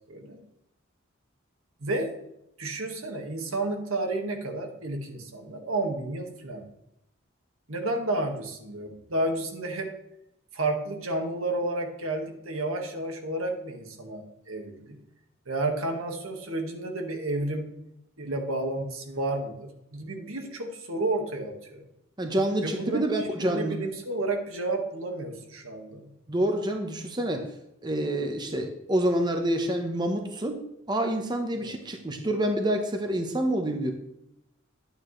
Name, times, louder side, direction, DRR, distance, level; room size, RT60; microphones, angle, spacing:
voice 1, 0.1-0.4 1.8-2.1 2.6-6.7 7.7-9.9 10.5-15.0 15.5-17.7 18.2-21.8 22.6-23.0 23.4-26.1 31.6-31.8, right 2 dB, 85° right, 3 dB, 1.8 m, -31 dB
voice 2, 22.2-23.8 26.3-27.5 27.8-30.6 30.9-33.9, right 1 dB, 20° right, 5 dB, 0.9 m, -27 dB
11.5 x 9.1 x 3.2 m, 0.82 s
head